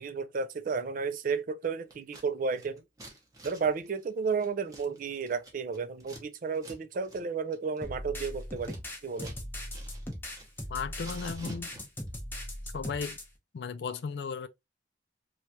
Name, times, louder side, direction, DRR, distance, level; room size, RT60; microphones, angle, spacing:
voice 1, 0.0-2.8 3.4-8.8 9.0-9.3, right 5 dB, 45° right, 0.4 m, -32 dB
Scissors, 1.9-2.3 2.5-6.2 6.5-6.8 7.0-7.2 7.5-9.4 9.7-10.6 10.9-12.1, right 1 dB, 20° right, 0.8 m, -50 dB
sound 1, 7.8-13.2, left 1 dB, 10° left, 0.6 m, -39 dB
voice 2, 10.7-11.7 12.7-13.2 13.5-14.5, left 5 dB, 60° left, 0.3 m, -35 dB
3.1 x 2.3 x 2.7 m
head